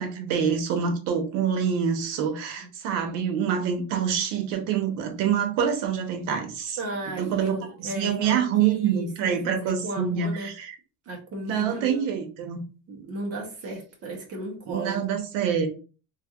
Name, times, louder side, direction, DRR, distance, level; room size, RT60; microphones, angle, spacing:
voice 1, 0.0-6.8 7.2-10.7 11.4-12.6 14.7-15.7, right 7 dB, 85° right, 0.9 m, -26 dB
voice 2, 6.8-10.5 11.1-12.1 12.9-15.0, right 1 dB, 35° right, 0.8 m, -35 dB
3.3 x 2.6 x 2.3 m
cardioid pair, 170°, 43 cm